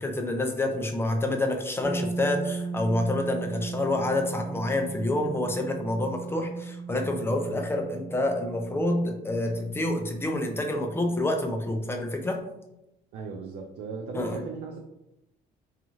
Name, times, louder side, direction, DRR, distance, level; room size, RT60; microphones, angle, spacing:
voice 1, 0.0-12.4 14.1-14.4, left 1 dB, 15° left, 3 dB, 0.4 m, -28 dB
sound 1, 1.8-11.6, right 4 dB, 50° right, 1.0 m, -37 dB
voice 2, 13.1-14.8, right 5 dB, 75° right, 1 dB, 0.4 m, -37 dB
2.9 x 2.4 x 2.6 m, 0.89 s
cardioid pair, 110°, 17 cm